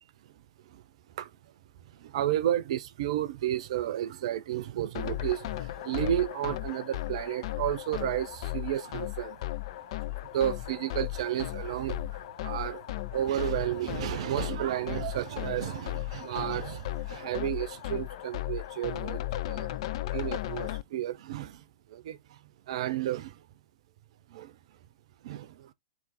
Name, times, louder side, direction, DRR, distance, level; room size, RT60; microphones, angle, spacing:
voice 1, 1.9-9.4 10.2-12.0 12.4-12.8 13.1-19.7 20.1-22.4 22.7-23.4 24.3-24.5 25.2-25.7, right 12 dB, 55° right, 0.6 m, -32 dB
sound 1, 4.9-20.8, left 15 dB, 50° left, 0.4 m, -36 dB
3.8 x 2.9 x 4.1 m
figure-of-eight pair, 100°, 4 cm